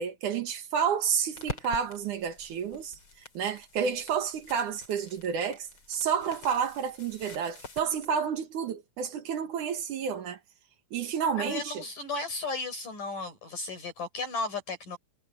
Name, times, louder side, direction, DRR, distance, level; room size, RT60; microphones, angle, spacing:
voice 1, 0.0-3.0 3.3-10.4 10.9-11.8, right 7 dB, 60° right, 2.6 m, -30 dB
sound 1, 1.4-8.1, left 3 dB, 30° left, 4.4 m, -46 dB
voice 2, 11.4-15.0, left 3 dB, 50° left, 6.1 m, -34 dB
omnidirectional pair, 4.8 m